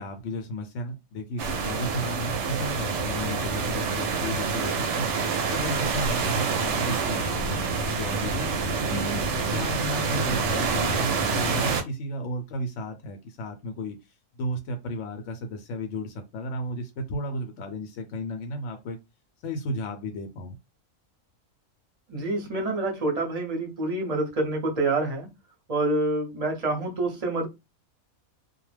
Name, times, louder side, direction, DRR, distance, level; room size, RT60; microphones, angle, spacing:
voice 1, 0.0-5.1 5.5-8.5 8.9-14.0 14.4-19.0 19.4-20.6, equal, 70° left, 0.8 m, -33 dB
sound 1, 1.4-11.8, right 4 dB, 65° right, 0.8 m, -27 dB
voice 2, 22.1-25.3 25.7-27.5, right 2 dB, 35° right, 0.7 m, -27 dB
2.3 x 2.1 x 3.2 m
omnidirectional pair, 1.5 m